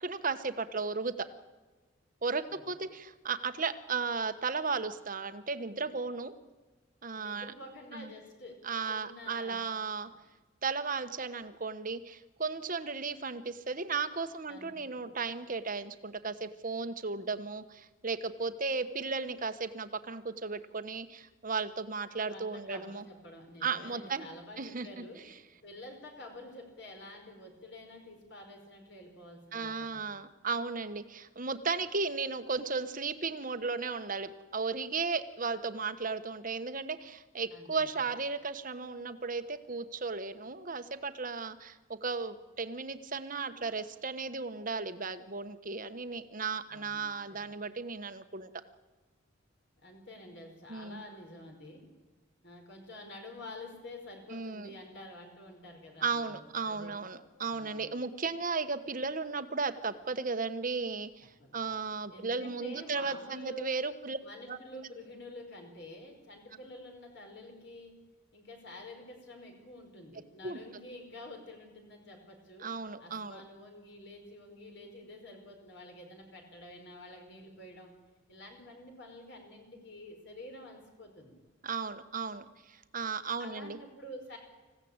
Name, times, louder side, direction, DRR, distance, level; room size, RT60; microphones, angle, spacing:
voice 1, 0.0-1.3 2.2-6.3 7.0-7.5 7.9-8.1 8.6-10.1 10.6-23.0 23.6-24.3 24.6-25.0 29.5-48.5 50.7-51.0 54.3-54.7 56.0-61.3 61.5-64.2 64.5-64.6 70.4-70.6 72.6-73.4 81.6-83.8, right 4 dB, 40° right, 10 dB, 1.2 m, -35 dB
voice 2, 7.2-8.6 8.8-9.6 14.5-14.7 15.0-15.2 22.3-25.2 25.6-30.0 37.5-38.0 46.7-47.4 49.8-51.8 52.4-56.9 57.5-57.9 61.4-61.6 62.1-63.7 64.2-67.9 68.3-72.7 73.0-77.9 78.3-81.3 83.4-84.4, left 1 dB, 55° left, 2 dB, 5.0 m, -49 dB
26.0 x 16.0 x 8.8 m, 1.3 s
head